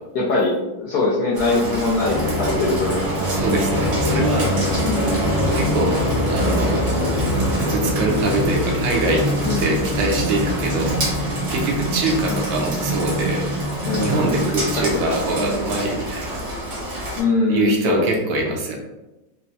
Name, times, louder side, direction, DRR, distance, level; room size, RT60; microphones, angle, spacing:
voice 1, 0.1-0.5 0.8-3.0 4.8-5.1 9.5-9.8 12.3-12.5 13.9-14.3 15.1-15.6 17.2-18.0, left 3 dB, 70° left, -5 dB, 0.9 m, -22 dB
Rain, 1.3-17.2, right 1 dB, 50° right, 1.0 m, -29 dB
sound 1, 1.9-15.2, equal, ahead, 0.9 m, -24 dB
voice 2, 3.3-4.5 4.8-4.9 5.5-6.0 6.3-6.7 7.5-9.2 9.6-11.0 11.5-13.4 13.9-16.5 17.5-18.8, right 2 dB, 80° right, 0 dB, 1.5 m, -23 dB
4.4 x 2.0 x 2.6 m, 1.0 s
omnidirectional pair, 2.2 m